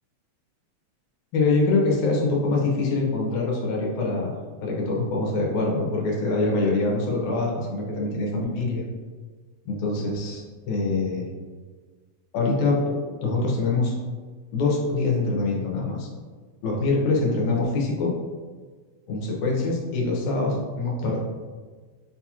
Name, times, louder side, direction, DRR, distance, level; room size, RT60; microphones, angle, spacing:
voice 1, 1.3-4.3 4.6-8.9 9.7-11.3 12.3-14.0 14.5-16.1 16.6-18.1 19.1-21.2, left 3 dB, 90° left, -2 dB, 2.2 m, -24 dB
6.4 x 2.4 x 2.8 m, 1.4 s
omnidirectional pair, 3.4 m